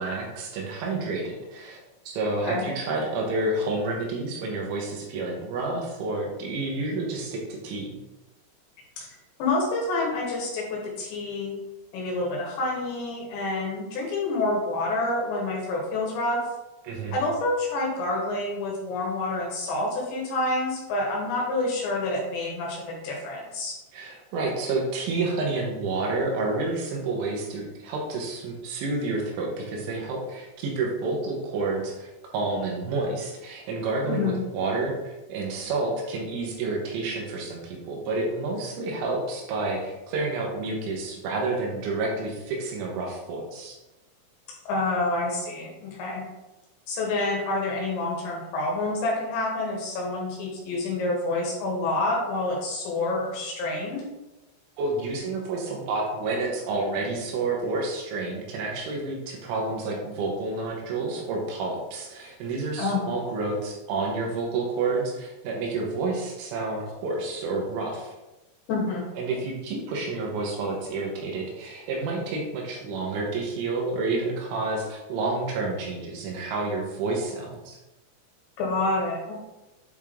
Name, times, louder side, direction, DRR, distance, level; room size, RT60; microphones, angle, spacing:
voice 1, 0.0-1.8 2.1-8.0 16.9-17.2 23.9-43.8 54.8-68.1 69.2-77.8, right 3 dB, 75° right, -1 dB, 3.5 m, -29 dB
voice 2, 9.4-11.6 11.9-16.5 17.1-23.7 34.1-34.3 44.7-46.3 46.9-54.1 62.8-63.0 68.7-69.1 78.6-79.3, left 2 dB, 70° left, -2 dB, 3.2 m, -28 dB
8.6 x 4.5 x 3.7 m, 1.0 s
omnidirectional pair, 5.9 m